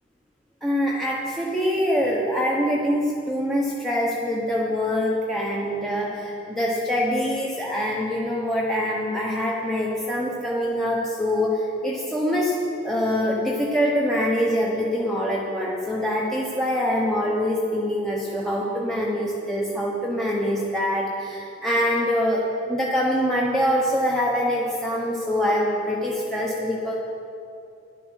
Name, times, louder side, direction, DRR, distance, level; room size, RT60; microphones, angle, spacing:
voice 1, 0.6-12.6 12.8-26.9, equal, ahead, -5 dB, 1.0 m, -24 dB
11.5 x 10.5 x 6.5 m, 2.6 s
head